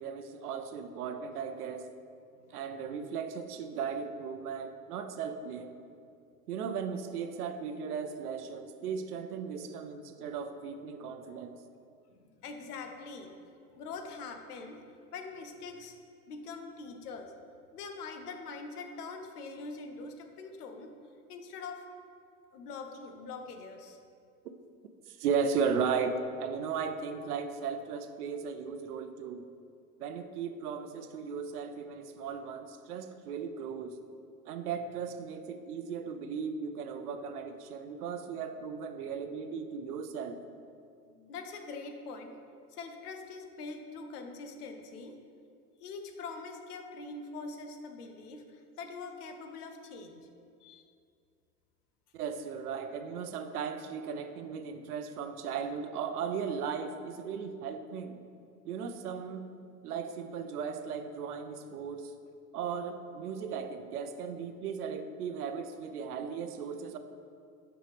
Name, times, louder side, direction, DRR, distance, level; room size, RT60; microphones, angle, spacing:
voice 1, 0.0-1.9 2.5-5.7 6.5-11.6 25.1-29.5 30.0-34.0 34.4-40.4 52.1-58.2 58.7-59.4 59.8-62.1 62.5-67.0, right 6 dB, 70° right, 8 dB, 0.6 m, -36 dB
voice 2, 12.1-14.8 15.1-15.9 16.3-17.3 17.7-20.9 21.3-21.8 22.5-24.0 41.1-42.4 42.7-45.2 45.8-50.2 50.6-50.9, left 4 dB, 70° left, 5 dB, 0.8 m, -43 dB
6.3 x 5.6 x 3.4 m, 2.4 s
hypercardioid pair, 90°, 47 cm